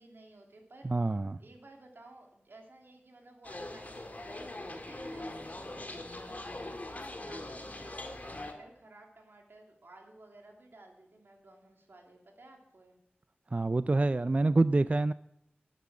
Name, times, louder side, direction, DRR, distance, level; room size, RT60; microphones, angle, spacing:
voice 1, 0.0-13.0, right 2 dB, 80° right, 2 dB, 2.6 m, -55 dB
voice 2, 0.8-1.4 13.5-15.1, right 2 dB, 40° right, 15 dB, 0.3 m, -26 dB
sound 1, 3.4-8.5, left 1 dB, 45° left, 1.9 m, -42 dB
11.5 x 9.3 x 6.1 m, 0.80 s
wide cardioid pair, 50°, 4 cm